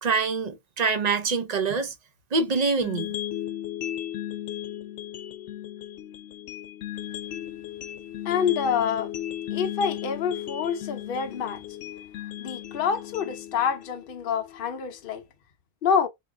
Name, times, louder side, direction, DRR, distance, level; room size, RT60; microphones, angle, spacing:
voice 1, 0.0-1.9 2.3-3.1, right 4 dB, 40° right, 0.7 m, -25 dB
sound 1, 2.8-14.8, left 12 dB, 90° left, 0.9 m, -36 dB
voice 2, 8.2-9.1 9.5-11.6 12.4-15.2 15.8-16.1, left 7 dB, 55° left, 0.8 m, -27 dB
3.4 x 2.7 x 3.6 m
omnidirectional pair, 1.2 m